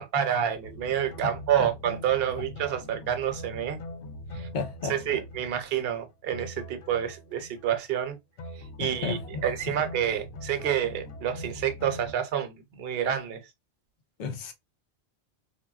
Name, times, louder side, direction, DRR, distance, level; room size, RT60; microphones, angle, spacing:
voice 1, 0.0-3.8 4.3-4.5 4.9-8.2 8.8-13.4, right 9 dB, 65° right, 0.8 m, -28 dB
sound 1, 0.6-8.1 8.4-12.1, left 1 dB, 90° left, 0.9 m, -42 dB
voice 2, 4.3-5.2 8.8-9.4 14.2-14.5, left 4 dB, 55° left, 0.6 m, -34 dB
3.2 x 2.2 x 2.2 m
omnidirectional pair, 1.1 m